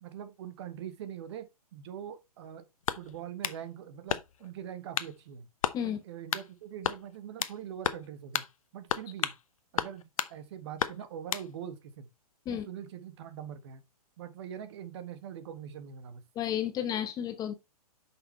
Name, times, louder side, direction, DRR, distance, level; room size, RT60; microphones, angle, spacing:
voice 1, 0.0-2.6 3.0-5.5 5.8-8.4 8.7-9.3 9.7-12.1 12.5-13.8 14.2-16.2, right 9 dB, 45° right, 1.5 m, -43 dB
sound 1, 2.8-3.6 4.1-4.5 4.9-5.1 5.6-5.8 6.3-6.5 6.8-7.6 7.8-8.1 8.3-8.5 8.9-9.4 9.8-10.3 10.8-11.5, left 8 dB, 60° left, 0.8 m, -32 dB
voice 2, 16.3-17.5, left 10 dB, 20° left, 0.9 m, -32 dB
8.8 x 6.2 x 3.3 m
figure-of-eight pair, 120°, 20 cm